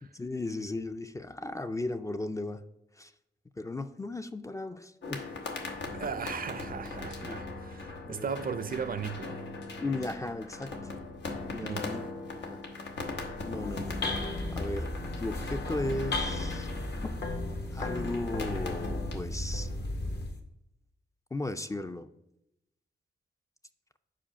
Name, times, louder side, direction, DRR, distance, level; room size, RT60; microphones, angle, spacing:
voice 1, 0.0-2.6 3.0-3.1 3.6-5.3 6.2-6.3 6.9-7.4 8.1-8.3 9.8-10.9 11.4-12.1 12.3-12.6 13.4-13.9 14.5-14.9 15.2-16.7 17.0-17.1 17.7-19.7 21.3-22.1, left 2 dB, 15° left, 0.3 m, -36 dB
sound 1, 5.0-19.2, left 3 dB, 90° left, 0.9 m, -40 dB
voice 2, 5.9-9.4 11.6-12.0, right 6 dB, 55° right, 0.5 m, -36 dB
sound 2, 13.4-20.4, left 2 dB, 65° left, 1.0 m, -35 dB
5.0 x 4.7 x 5.7 m
cardioid pair, 80°, 18 cm